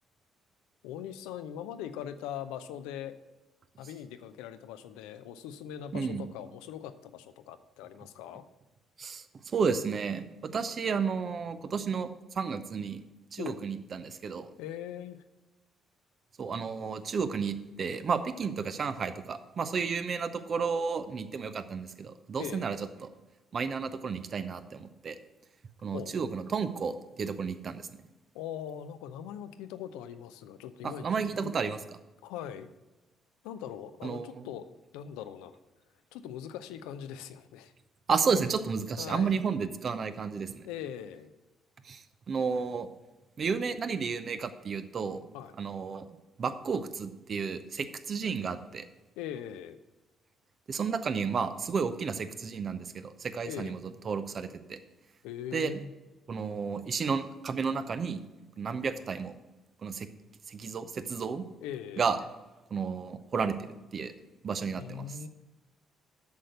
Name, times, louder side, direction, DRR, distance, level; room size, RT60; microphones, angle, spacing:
voice 1, 0.8-3.2 3.8-8.4 13.4-13.6 14.6-15.2 22.4-22.7 25.9-26.1 28.3-31.5 32.2-32.7 33.4-34.7 34.9-35.6 36.1-37.7 39.0-39.4 40.7-41.3 45.3-45.6 49.2-49.8 53.4-53.8 55.2-55.9 61.6-62.1 64.8-65.3, left 9 dB, 70° left, 11 dB, 0.5 m, -41 dB
voice 2, 5.9-6.3 9.0-13.0 13.3-14.5 16.4-23.1 23.5-25.2 25.8-27.9 30.8-31.8 34.0-34.5 38.1-40.7 41.8-42.9 43.4-45.2 45.6-46.1 46.4-48.9 50.7-53.8 54.0-54.8 55.5-55.7 56.3-58.2 58.6-59.4 59.8-60.1 60.5-61.5 62.0-62.2 62.7-64.1 64.4-65.1, right 5 dB, 45° right, 11 dB, 0.7 m, -32 dB
8.2 x 6.3 x 6.6 m, 1.1 s
hypercardioid pair, 45°, 0 cm